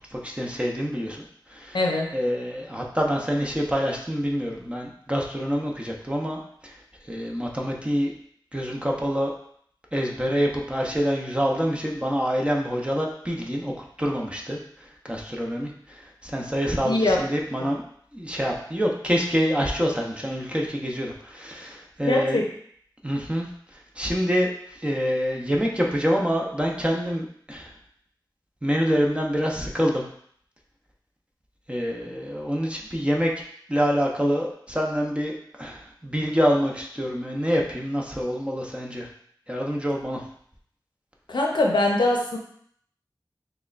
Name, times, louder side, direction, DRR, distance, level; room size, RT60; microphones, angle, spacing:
voice 1, 0.1-1.2 1.5-1.8 2.1-6.8 7.1-8.1 8.5-9.3 9.9-13.7 14.0-14.6 15.1-17.8 18.1-22.4 23.0-23.5 23.7-24.5 24.8-27.7 28.6-30.0 31.7-33.3 33.7-35.3 35.6-39.1 39.5-40.2, equal, 15° right, -1 dB, 0.7 m, -26 dB
voice 2, 1.7-2.1 16.8-17.2 17.6-17.7 22.1-22.5 41.3-42.4, left 2 dB, 75° left, 0 dB, 0.6 m, -22 dB
6.1 x 2.2 x 2.4 m, 0.63 s
wide cardioid pair, 50°, 8 cm